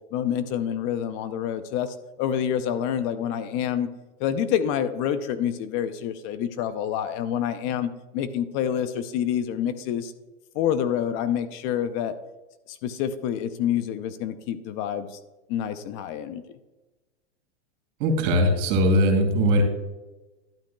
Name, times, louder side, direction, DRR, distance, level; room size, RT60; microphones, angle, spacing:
voice 1, 0.1-3.9 4.2-10.1 10.5-12.1 12.7-15.1 15.5-16.4, left 9 dB, 35° left, 12 dB, 0.5 m, -27 dB
voice 2, 18.0-19.6, equal, 50° right, 3 dB, 3.1 m, -20 dB
11.5 x 8.5 x 2.2 m, 1.1 s
hypercardioid pair, 135°, 34 cm